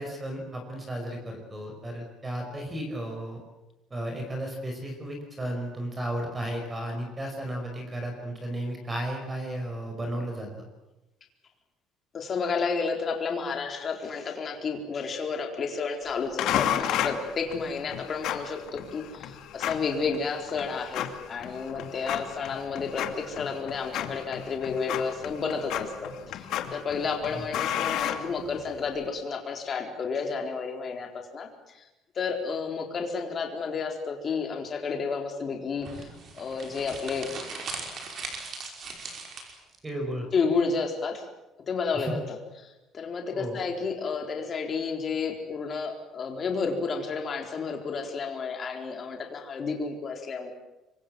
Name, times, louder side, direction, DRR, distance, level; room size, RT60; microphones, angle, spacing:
voice 1, 0.0-3.4 3.9-10.5 27.3-27.4 39.8-40.3 41.9-42.2 43.3-43.6, right 1 dB, 15° right, 3 dB, 5.3 m, -34 dB
voice 2, 12.1-26.4 26.7-31.5 32.2-36.1 36.4-37.3 40.3-41.2 41.7-42.4 42.6-50.5, left 5 dB, 30° left, 3 dB, 4.1 m, -31 dB
sound 1, 16.4-28.9, left 10 dB, 60° left, 2.4 m, -33 dB
sound 2, 35.8-39.8, right 4 dB, 40° right, 5.4 m, -39 dB
26.5 x 23.5 x 7.7 m, 0.98 s
cardioid pair, 165°, 0 cm